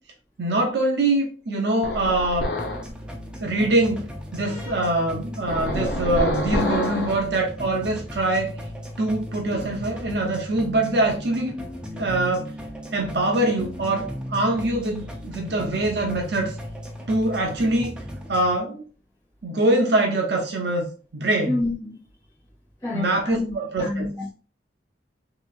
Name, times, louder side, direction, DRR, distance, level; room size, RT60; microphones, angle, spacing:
voice 1, 0.4-2.5 3.4-8.6 9.0-11.5 11.9-12.5 12.9-16.6 17.1-17.9 18.3-18.8 19.4-21.6 22.9-24.1, right 2 dB, 60° right, 0.6 m, -24 dB
sound 1, 1.8-2.9 5.5-7.2, left 1 dB, 60° left, 0.7 m, -27 dB
sound 2, 2.6-18.6, equal, 5° right, 0.4 m, -36 dB
voice 2, 4.4-4.8 21.4-22.0 22.8-24.3, left 2 dB, 25° left, 1.7 m, -29 dB
3.2 x 2.8 x 2.4 m
head